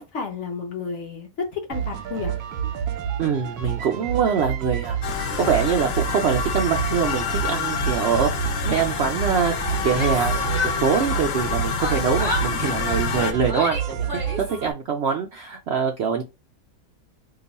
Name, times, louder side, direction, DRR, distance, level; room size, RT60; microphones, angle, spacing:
voice 1, 0.0-2.3, left 5 dB, 55° left, 1.2 m, -31 dB
sound 1, 1.7-14.7, right 8 dB, 85° right, 1.1 m, -29 dB
voice 2, 3.2-8.3 8.6-16.2, right 7 dB, 65° right, 0.6 m, -24 dB
sound 2, 5.0-13.3, left 6 dB, 80° left, 0.5 m, -27 dB
Yell, 9.8-11.4 11.8-14.6, left 2 dB, 20° left, 1.0 m, -31 dB
2.9 x 2.3 x 4.0 m
omnidirectional pair, 1.6 m